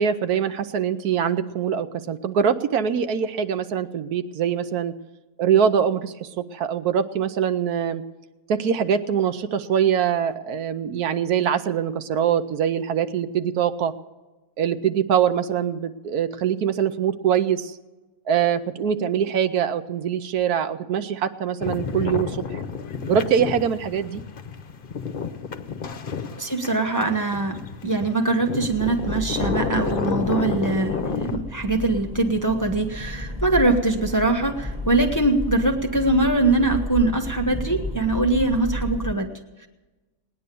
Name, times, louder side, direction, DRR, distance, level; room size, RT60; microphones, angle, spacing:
voice 1, 0.0-4.9 5.4-8.0 8.5-13.9 14.6-17.7 18.3-22.6 23.1-24.2, right 8 dB, 75° right, 11 dB, 1.2 m, -23 dB
sound 1, 21.6-31.4, left 6 dB, 45° left, 0.8 m, -30 dB
voice 2, 26.4-39.7, right 2 dB, 15° left, 4 dB, 0.8 m, -22 dB
Accelerating revving vroom, 28.6-39.1, equal, 5° right, 1.1 m, -33 dB
19.0 x 9.8 x 6.8 m, 1.2 s
omnidirectional pair, 1.7 m